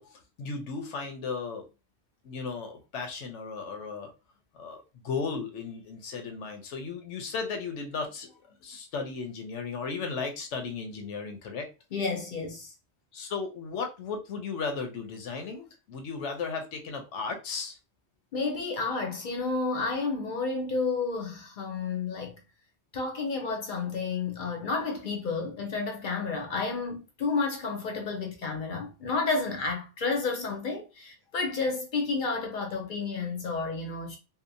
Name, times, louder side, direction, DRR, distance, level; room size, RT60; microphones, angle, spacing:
voice 1, 0.0-1.7 2.2-4.1 4.5-8.3 8.6-11.7 13.1-17.8, left 5 dB, 85° left, 1.0 m, -35 dB
voice 2, 11.9-12.7 18.3-22.4 22.9-34.2, left 4 dB, 55° left, 0.6 m, -31 dB
2.7 x 2.0 x 2.6 m
omnidirectional pair, 1.2 m